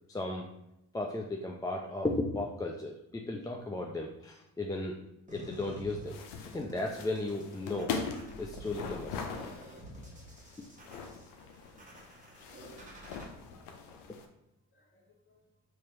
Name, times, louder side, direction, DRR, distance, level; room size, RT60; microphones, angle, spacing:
voice 1, 0.1-0.5 0.9-5.0 5.3-6.2 6.5-7.9 8.4-9.3, left 2 dB, 10° left, 0 dB, 0.4 m, -35 dB
sound 1, 5.3-13.3, equal, 20° right, 1.3 m, -50 dB
sound 2, 6.1-14.3, left 5 dB, 85° left, 0.7 m, -41 dB
voice 2, 12.3-13.7 14.7-15.4, left 2 dB, 30° left, 0 dB, 1.4 m, -68 dB
3.1 x 2.9 x 4.6 m, 0.85 s
supercardioid pair, 75°, 38 cm